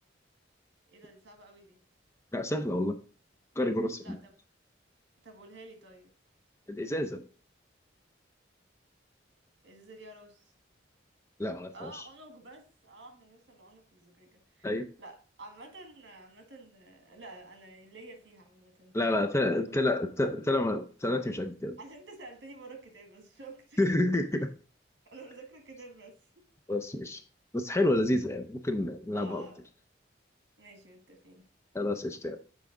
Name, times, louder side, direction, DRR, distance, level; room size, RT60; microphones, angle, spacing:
voice 1, 0.9-1.8 4.0-4.3 5.2-6.1 9.6-10.4 11.7-14.7 15.0-20.4 21.8-23.9 25.1-26.4 29.1-29.6 30.6-31.5, right 2 dB, 65° right, 1.5 m, -50 dB
voice 2, 2.3-3.0 3.6-4.2 6.7-7.2 11.4-12.0 14.6-14.9 18.9-21.8 23.8-24.5 26.7-27.2 27.5-29.5 31.7-32.4, left 1 dB, 15° left, 0.5 m, -29 dB
7.2 x 4.7 x 3.8 m
head